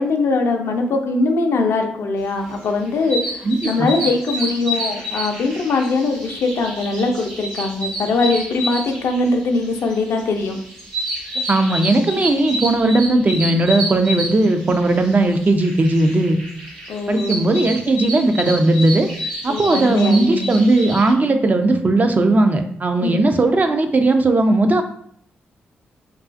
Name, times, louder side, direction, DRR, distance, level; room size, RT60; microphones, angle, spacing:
voice 1, 0.0-10.6 16.9-17.4 19.5-20.6 23.0-23.2, left 3 dB, 65° left, 4 dB, 0.4 m, -21 dB
sound 1, 2.5-21.1, equal, 90° right, 0.9 m, -29 dB
voice 2, 3.4-3.9 11.5-16.4 17.1-19.1 19.4-24.8, right 2 dB, 35° right, 6 dB, 0.3 m, -17 dB
2.4 x 2.3 x 2.4 m, 0.64 s
hypercardioid pair, 45°, 5 cm